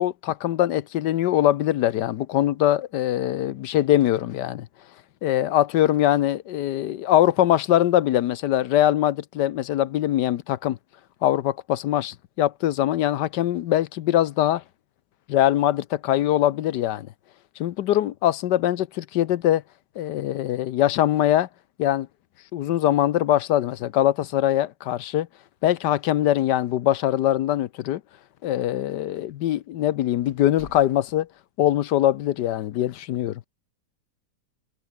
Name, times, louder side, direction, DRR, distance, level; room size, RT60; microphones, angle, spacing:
voice 1, 0.0-4.7 5.2-10.8 11.2-14.6 15.3-17.1 17.6-19.6 20.0-21.5 21.8-22.1 22.5-25.3 25.6-28.0 28.4-31.3 31.6-33.4, left 12 dB, 70° left, 1.3 m, -22 dB
sound 1, 26.4-27.0 27.3-27.4 28.1-28.2 29.0-29.2 29.6-29.7 30.3-31.4, left 2 dB, 40° left, 4.6 m, -50 dB
omnidirectional pair, 2.0 m